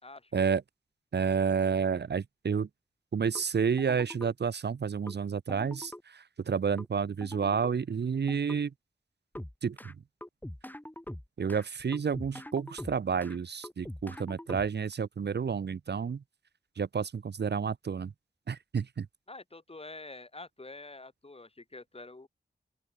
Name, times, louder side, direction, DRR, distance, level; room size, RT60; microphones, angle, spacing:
voice 1, 0.0-0.5 19.3-22.3, left 2 dB, 35° left, 4.1 m, -47 dB
voice 2, 1.1-2.7 3.1-8.7 9.6-9.9 11.4-16.2 16.8-18.1 18.5-19.1, right 6 dB, 70° right, 0.8 m, -30 dB
sound 1, 3.3-3.4 3.8-4.3 5.1-5.2 5.5-6.0 6.8-6.9 7.2-7.7 8.3-8.6 9.3-9.9 10.2-11.6 11.9-13.4 13.6-14.9, left 1 dB, 10° left, 6.6 m, -43 dB
open air
wide cardioid pair, 90°, 18 cm